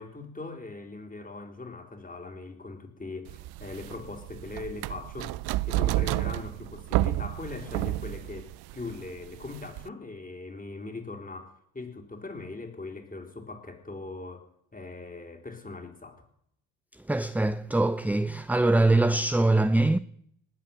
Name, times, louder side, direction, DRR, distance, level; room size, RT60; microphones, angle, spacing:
voice 1, 0.0-16.2, left 3 dB, 20° left, 3.9 m, -40 dB
sound 1, 3.3-9.9, right 17 dB, 60° right, 0.6 m, -31 dB
voice 2, 17.1-20.0, right 2 dB, 5° right, 0.6 m, -23 dB
20.0 x 8.0 x 7.3 m
hypercardioid pair, 50°, 43 cm